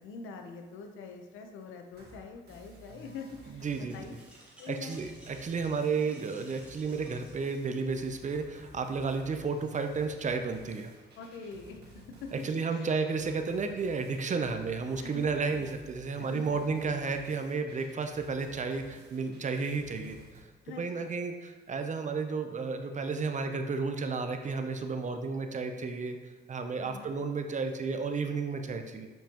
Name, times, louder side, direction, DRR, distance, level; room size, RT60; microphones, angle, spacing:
voice 1, 0.0-4.1 4.6-5.0 5.8-6.0 11.2-11.8 12.2-12.3 12.7-12.9 15.0-15.7 16.3-16.4 20.7-21.1 26.8-27.2, left 4 dB, 90° left, 4 dB, 0.8 m, -45 dB
sound 1, 1.9-20.4, right 2 dB, 55° right, 1.7 m, -54 dB
voice 2, 3.5-4.0 4.7-10.9 12.3-20.2 20.8-26.2 26.5-29.1, right 4 dB, 40° right, 6 dB, 0.6 m, -32 dB
sound 2, 3.7-8.1, right 1 dB, 5° right, 1.4 m, -57 dB
7.3 x 5.4 x 2.9 m, 1.4 s
cardioid pair, 90°, 20 cm